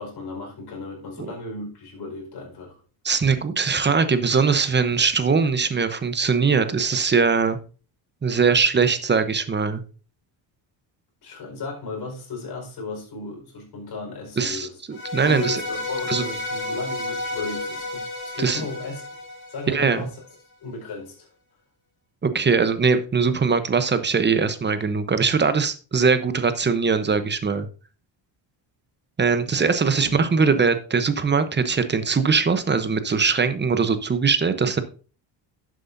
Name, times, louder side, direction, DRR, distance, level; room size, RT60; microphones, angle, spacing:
voice 1, 0.0-2.8 11.2-14.8 15.2-19.2 19.5-20.2 20.6-21.3 29.5-29.6 30.0-30.5, left 3 dB, 55° left, 4.9 m, -35 dB
voice 2, 3.0-7.6 8.2-9.8 14.4-15.6 16.1-16.2 18.4-18.6 19.7-20.1 22.2-27.7 29.2-34.8, right 5 dB, 25° right, 1.0 m, -21 dB
sound 1, 14.9-20.1, left 2 dB, 25° left, 4.6 m, -31 dB
11.0 x 7.7 x 2.7 m
cardioid pair, 105°, 46 cm